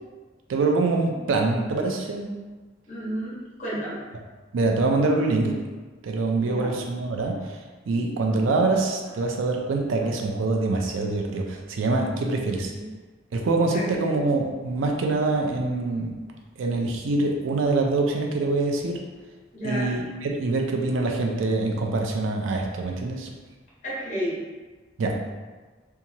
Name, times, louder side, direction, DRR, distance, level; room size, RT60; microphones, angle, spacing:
voice 1, 0.5-2.3 4.5-5.6 6.0-7.6 7.9-12.7 13.3-16.1 16.6-19.0 19.6-23.3 25.0-25.2, right 3 dB, 85° right, 1 dB, 0.4 m, -24 dB
voice 2, 2.9-4.0 6.3-6.7 8.6-8.7 12.7-12.9 13.7-14.2 19.5-19.9 23.8-24.4, equal, 40° left, -8 dB, 1.1 m, -32 dB
2.9 x 2.3 x 2.7 m, 1.3 s
head